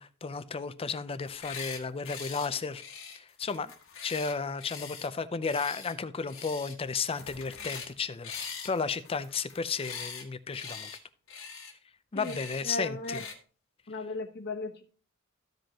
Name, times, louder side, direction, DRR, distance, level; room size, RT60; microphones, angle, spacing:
voice 1, 0.0-2.8 3.1-3.7 4.0-10.9 12.1-13.2, left 5 dB, 25° left, 0.5 m, -33 dB
sound 1, 1.2-1.8 2.0-2.5 2.8-5.1 5.4-5.9 6.3-6.7 7.0-7.9 8.2-10.2 10.5-11.0 11.3-11.7 12.2-12.6 13.0-13.3, left 6 dB, 65° left, 1.4 m, -42 dB
voice 2, 12.6-13.2 13.9-14.8, left 2 dB, 50° left, 1.1 m, -36 dB
14.0 x 5.2 x 2.9 m
head